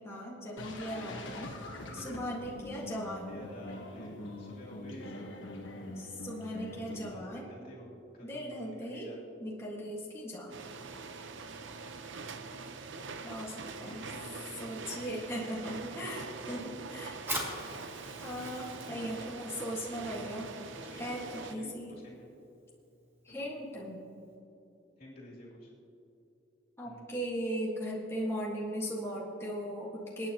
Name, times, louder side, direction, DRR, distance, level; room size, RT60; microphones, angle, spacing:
voice 1, 0.0-1.5 1.9-3.4 6.0-7.5 8.2-9.1 9.4-10.5 13.2-14.0 14.6-17.2 18.2-20.5 21.0-21.9 23.2-24.0 26.8-30.3, equal, 15° left, -5 dB, 1.7 m, -38 dB
sound 1, 0.6-7.1, left 1 dB, 80° left, 1.3 m, -44 dB
voice 2, 1.9-2.3 3.3-5.4 5.7-6.1 6.7-9.2 13.6-15.6 16.0-16.2 17.2-17.4 18.8-19.4 20.7-22.3 23.3-23.5 25.0-25.7 26.8-27.1, left 1 dB, 50° left, -5 dB, 2.8 m, -50 dB
sound 2, 10.5-21.6, right 4 dB, 75° right, 0.7 m, -44 dB
Fire, 17.1-24.3, right 1 dB, 15° right, 2.2 m, -45 dB
27.0 x 9.4 x 3.0 m, 2.9 s
head